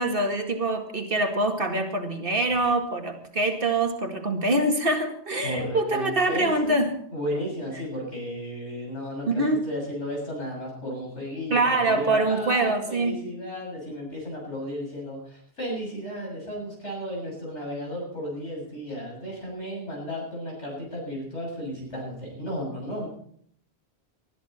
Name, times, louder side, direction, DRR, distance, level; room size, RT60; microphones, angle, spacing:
voice 1, 0.0-7.0 9.3-9.6 11.5-13.2, right 2 dB, 55° right, 4 dB, 2.2 m, -24 dB
voice 2, 5.4-6.8 7.1-23.1, equal, 90° left, -2 dB, 7.4 m, -34 dB
20.0 x 13.5 x 4.4 m, 0.64 s
omnidirectional pair, 1.1 m